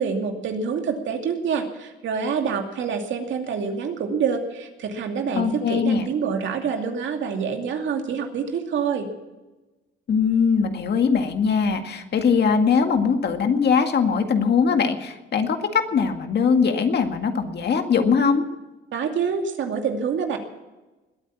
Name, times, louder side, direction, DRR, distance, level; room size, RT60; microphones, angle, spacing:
voice 1, 0.0-9.1 18.9-20.4, right 6 dB, 70° right, 4 dB, 2.5 m, -26 dB
voice 2, 5.4-6.1 10.1-18.5, left 6 dB, 55° left, 6 dB, 2.0 m, -21 dB
20.5 x 9.0 x 7.2 m, 1.1 s
cardioid pair, 90°, 20 cm